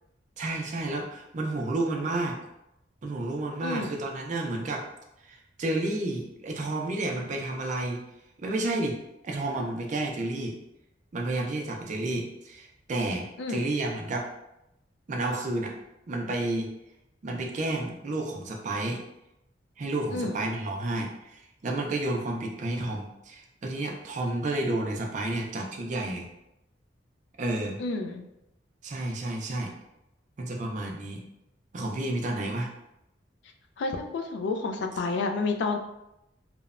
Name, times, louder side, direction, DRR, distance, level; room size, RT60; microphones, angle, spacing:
voice 1, 0.4-2.4 3.0-4.9 5.2-8.0 8.4-9.0 9.2-10.6 11.1-14.3 15.1-15.7 16.1-16.7 17.2-19.0 19.8-26.3 27.4-27.8 28.8-29.7 30.4-31.2 31.7-32.7, right 2 dB, 45° right, 1 dB, 0.4 m, -31 dB
voice 2, 3.6-3.9 13.4-13.6 20.1-20.3 27.8-28.2 33.8-35.8, left 3 dB, 75° left, 5 dB, 0.3 m, -30 dB
3.0 x 2.0 x 2.4 m, 0.86 s
head